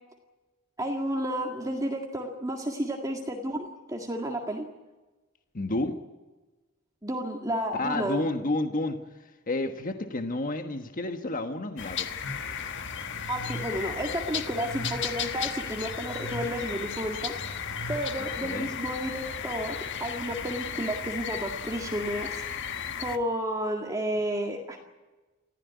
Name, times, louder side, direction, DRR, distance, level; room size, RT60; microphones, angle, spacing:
voice 1, 0.8-4.7 7.0-8.2 13.3-17.3 17.9-19.8 20.0-22.4 23.0-24.8, right 1 dB, 15° right, 1 dB, 1.9 m, -31 dB
voice 2, 5.5-6.0 7.7-9.0 9.5-12.2 18.2-18.7, left 2 dB, 40° left, 6 dB, 1.3 m, -30 dB
sound 1, 11.8-23.2, left 8 dB, 60° left, 1.4 m, -35 dB
sound 2, 12.2-21.6, left 1 dB, 85° left, 4.6 m, -42 dB
25.0 x 15.0 x 9.5 m, 1.2 s
head